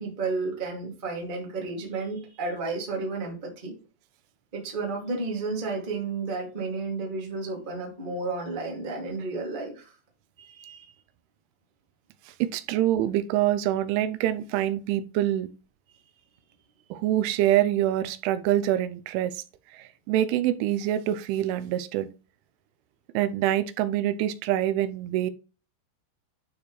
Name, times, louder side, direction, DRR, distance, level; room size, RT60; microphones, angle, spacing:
voice 1, 0.0-3.7 4.5-9.9 10.4-10.9, right 3 dB, 70° right, 0.4 m, -32 dB
voice 2, 12.4-15.5 16.9-19.4 19.7-22.1 23.1-25.3, right 13 dB, 90° right, 3.1 m, -25 dB
11.5 x 4.2 x 3.2 m
omnidirectional pair, 5.5 m